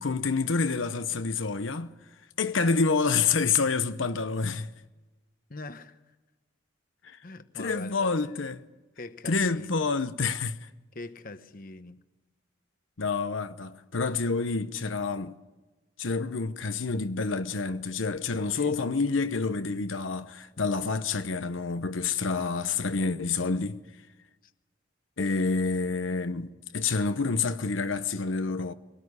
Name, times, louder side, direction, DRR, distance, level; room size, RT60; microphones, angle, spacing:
voice 1, 0.0-1.9 2.4-4.7 7.0-7.2 7.6-8.6 9.2-10.7 13.0-15.3 16.0-23.8 25.2-28.7, left 4 dB, 85° left, 0.9 m, -28 dB
voice 2, 5.5-6.0 7.2-8.3 9.0-9.9 10.9-12.0 18.5-18.8, left 2 dB, 45° left, 1.0 m, -43 dB
22.5 x 18.5 x 9.7 m
head